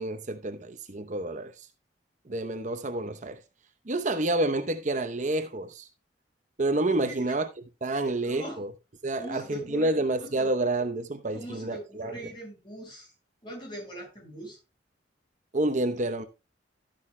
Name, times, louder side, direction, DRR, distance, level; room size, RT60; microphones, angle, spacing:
voice 1, 0.0-1.7 2.3-3.4 3.9-5.9 6.6-7.5 7.8-8.7 9.0-12.1 15.5-16.3, right 2 dB, 40° right, 0.8 m, -29 dB
voice 2, 6.9-7.3 7.9-8.6 9.2-9.9 10.2-10.5 11.3-13.1 13.4-14.6, right 1 dB, 25° left, 6.3 m, -41 dB
13.0 x 10.0 x 2.2 m
head